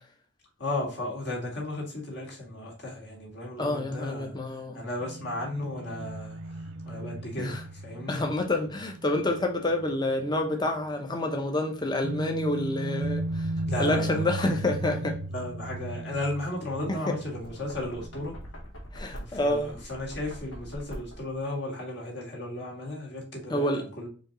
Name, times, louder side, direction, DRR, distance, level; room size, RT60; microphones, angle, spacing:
voice 1, 0.6-4.4 4.7-7.5 7.8-8.2 13.7-14.4 15.3-18.3 19.3-24.1, left 1 dB, 55° left, 1.7 m, -35 dB
voice 2, 3.6-4.8 7.4-7.6 8.1-13.5 13.8-15.2 16.9-17.2 18.9-19.7 23.5-23.8, left 1 dB, 20° left, 0.7 m, -28 dB
sound 1, 5.0-10.4 10.7-10.8 12.0-18.6, right 1 dB, 80° right, 0.5 m, -36 dB
Knock, 17.3-21.4, equal, 85° left, 1.4 m, -43 dB
4.4 x 2.8 x 3.8 m
head